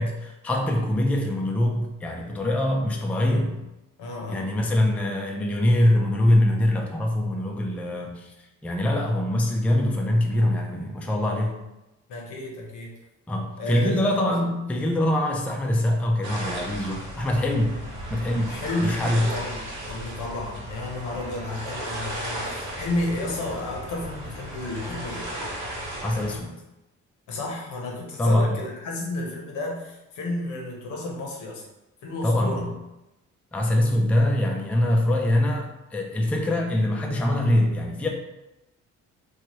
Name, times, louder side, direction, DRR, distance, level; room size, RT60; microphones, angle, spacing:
voice 1, 0.0-3.6 4.3-8.3 8.6-11.5 13.3-17.8 18.1-19.3 26.0-26.6 28.2-28.5 32.2-32.7 33.5-38.1, left 1 dB, 5° left, 1 dB, 0.3 m, -23 dB
voice 2, 4.0-4.5 10.3-10.5 12.1-12.9 13.6-14.0 14.3-14.4 18.5-25.3 27.3-31.6 32.0-32.6, left 2 dB, 80° left, -1 dB, 0.8 m, -32 dB
sound 1, 16.2-26.4, right 1 dB, 70° right, 1.0 m, -35 dB
2.9 x 2.3 x 2.9 m, 0.96 s
cardioid pair, 90°, 30 cm